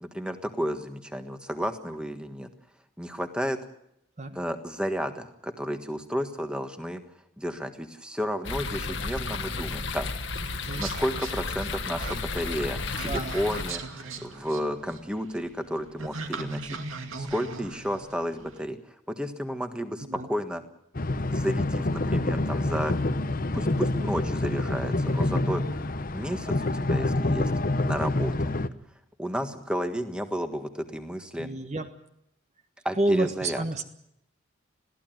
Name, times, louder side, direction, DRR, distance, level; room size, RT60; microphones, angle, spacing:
voice 1, 0.0-2.5 3.0-3.6 4.3-7.0 7.4-10.1 10.8-20.6 21.3-22.9 23.5-25.8 26.1-27.5 27.8-28.3 29.2-31.5 32.8-33.6, equal, 5° right, 7 dB, 1.5 m, -32 dB
sound 1, 8.4-13.7, left 3 dB, 60° left, 1.6 m, -33 dB
sound 2, 9.0-18.6, right 3 dB, 75° right, 2.4 m, -39 dB
voice 2, 13.0-13.3 20.0-20.3 31.4-31.9 33.0-33.8, right 2 dB, 35° right, 7 dB, 1.4 m, -29 dB
sound 3, 21.0-28.7, left 2 dB, 40° left, 0.8 m, -27 dB
21.5 x 16.0 x 9.3 m, 0.76 s
head